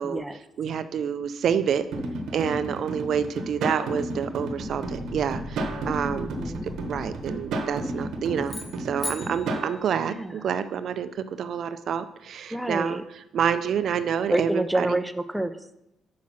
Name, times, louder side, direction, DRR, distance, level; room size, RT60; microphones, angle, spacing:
voice 1, 0.0-0.4 6.2-6.7 10.1-10.5 12.5-13.0 14.3-15.8, right 1 dB, 5° right, 9 dB, 0.5 m, -28 dB
voice 2, 0.6-1.8 2.3-6.3 6.9-13.0 13.3-15.0, right 7 dB, 65° right, 12 dB, 0.4 m, -28 dB
sound 1, 1.9-9.7, right 2 dB, 80° right, 0.9 m, -32 dB
sound 2, 4.5-8.6, left 1 dB, 65° left, 2.1 m, -41 dB
sound 3, 8.4-10.8, left 2 dB, 30° left, 1.0 m, -39 dB
5.7 x 4.7 x 6.1 m, 0.87 s
cardioid pair, 90°, 0 cm